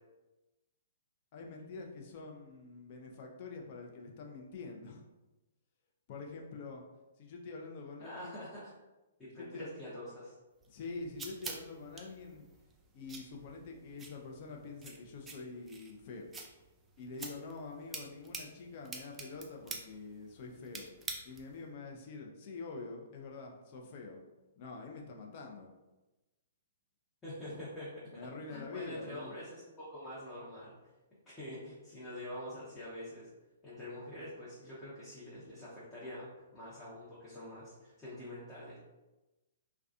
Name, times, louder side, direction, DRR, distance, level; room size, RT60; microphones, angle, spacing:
voice 1, 1.3-5.0 6.1-6.8 7.2-8.4 9.4-9.7 10.7-12.4 12.9-16.3 17.0-20.9 21.2-24.2 24.6-25.7 27.4-27.6 28.1-29.3, left 3 dB, 45° left, 1 dB, 0.5 m, -46 dB
voice 2, 8.0-8.7 9.2-10.3 27.2-27.9 28.5-30.7 31.3-33.3 33.6-38.8, left 1 dB, 15° left, -10 dB, 0.8 m, -45 dB
sound 1, 10.6-21.6, right 3 dB, 15° right, 0.4 m, -48 dB
2.3 x 2.2 x 2.5 m, 1.1 s
figure-of-eight pair, 120°, 0 cm